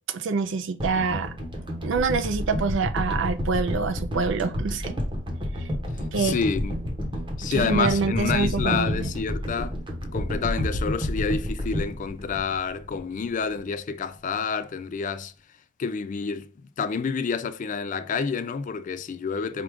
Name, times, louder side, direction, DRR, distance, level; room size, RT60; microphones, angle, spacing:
voice 1, 0.1-1.3 1.8-4.9 5.6-5.7 6.1-6.4 7.5-9.1, right 4 dB, 70° right, 0.4 m, -26 dB
sound 1, 0.8-13.1 13.4-13.6, equal, 25° right, 1.0 m, -30 dB
voice 2, 6.2-6.8 7.4-9.7 10.1-15.3 15.8-16.5 16.8-19.6, left 5 dB, 40° left, 0.3 m, -28 dB
4.7 x 2.4 x 3.4 m
head